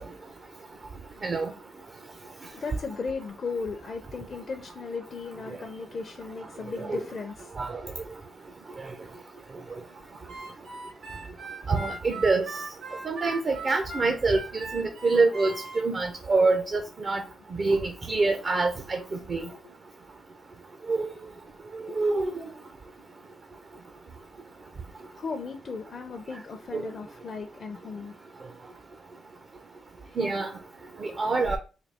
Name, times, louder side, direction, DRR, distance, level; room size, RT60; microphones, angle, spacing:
voice 1, 0.3-1.2 2.5-7.6 19.5-19.7 21.9-22.0 25.1-28.1, left 4 dB, 55° left, 0.5 m, -37 dB
voice 2, 1.2-1.5 6.8-7.0 7.6-7.8 11.7-12.5 13.0-17.2 17.6-19.5 20.9-21.1 21.8-22.3 26.7-26.8 30.2-30.5 31.0-31.6, right 3 dB, 50° right, 0.6 m, -26 dB
Harmonica, 10.3-15.8, right 3 dB, 80° right, 2.0 m, -39 dB
4.0 x 2.3 x 3.4 m
supercardioid pair, 55°, 0 cm